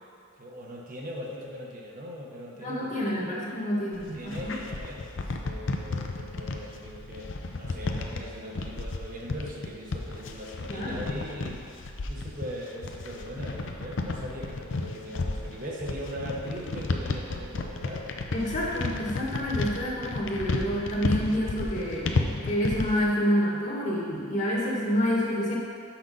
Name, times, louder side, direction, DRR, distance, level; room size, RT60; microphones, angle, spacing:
voice 1, 0.4-3.5 4.0-11.6 12.1-18.1, equal, 45° right, -2 dB, 1.0 m, -40 dB
voice 2, 2.6-4.6 10.7-11.0 18.3-25.6, equal, 40° left, -4 dB, 1.5 m, -28 dB
sound 1, 3.9-23.0, left 3 dB, 65° left, 0.6 m, -32 dB
6.4 x 5.9 x 5.4 m, 2.3 s
head